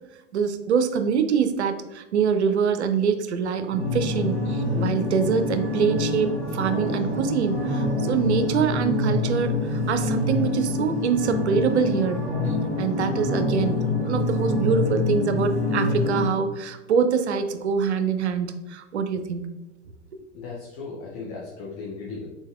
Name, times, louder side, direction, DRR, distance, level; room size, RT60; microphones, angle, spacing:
voice 1, 0.3-12.2 12.5-19.5, right 6 dB, 65° right, 9 dB, 0.5 m, -25 dB
sound 1, 3.7-16.3, left 2 dB, 5° left, 1.2 m, -26 dB
voice 2, 20.3-22.3, left 4 dB, 35° left, -2 dB, 0.7 m, -36 dB
3.9 x 3.6 x 2.4 m, 1.1 s
figure-of-eight pair, 100°, 37 cm